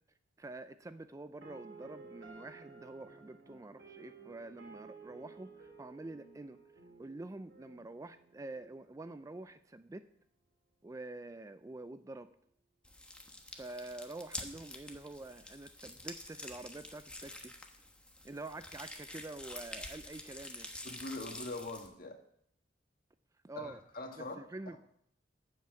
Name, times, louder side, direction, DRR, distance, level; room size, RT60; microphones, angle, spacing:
voice 1, 0.4-6.6 7.0-10.0 10.8-12.3 13.5-17.5 18.2-20.7 23.4-23.8 24.2-24.8, right 2 dB, 20° right, 11 dB, 0.4 m, -47 dB
sound 1, 1.4-9.4, right 4 dB, 75° right, 3.1 m, -55 dB
sound 2, 12.8-21.9, left 1 dB, 5° left, 1.1 m, -48 dB
voice 2, 20.8-22.2 23.6-24.4, left 2 dB, 55° left, 3 dB, 1.8 m, -42 dB
9.0 x 7.6 x 7.4 m, 0.70 s
head